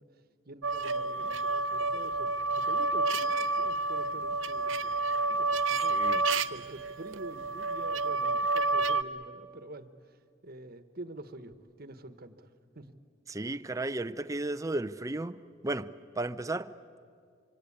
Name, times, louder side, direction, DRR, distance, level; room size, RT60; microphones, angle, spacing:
voice 1, 0.0-5.0 5.3-12.9, right 2 dB, 50° right, 1.3 m, -47 dB
sound 1, 0.6-9.0, right 3 dB, 85° right, 0.7 m, -29 dB
voice 2, 5.9-6.2 13.3-16.7, right 2 dB, 15° right, 0.6 m, -34 dB
25.5 x 25.0 x 8.7 m
head